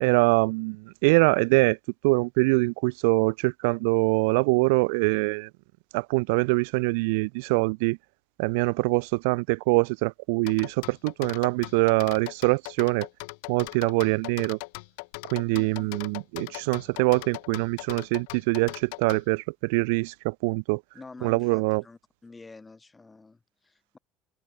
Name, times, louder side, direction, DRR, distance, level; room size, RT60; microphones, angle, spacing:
voice 1, 0.0-1.8 2.0-5.5 5.9-8.0 8.4-13.1 13.5-14.6 15.3-20.8 21.2-21.8, right 29 dB, 85° right, 0.4 m, -24 dB
sound 1, 10.5-19.2, left 31 dB, 85° left, 1.0 m, -39 dB
voice 2, 15.5-15.9 20.9-24.0, left 3 dB, 15° left, 6.6 m, -48 dB
supercardioid pair, 115°, 0 cm